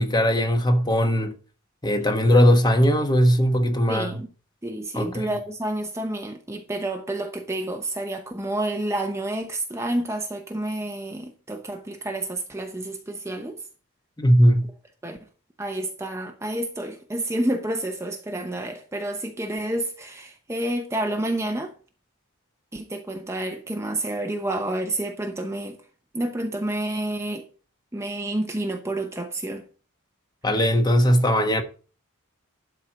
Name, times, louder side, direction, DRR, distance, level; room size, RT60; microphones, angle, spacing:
voice 1, 0.0-1.3 1.8-4.1 4.9-5.3 14.2-14.7 30.4-31.6, equal, 20° left, 1.1 m, -19 dB
voice 2, 3.9-4.3 4.6-13.6 15.0-15.2 15.6-21.7 22.7-25.8 26.1-27.5 27.9-29.7, right 1 dB, 10° right, 0.8 m, -29 dB
12.0 x 4.4 x 6.2 m
head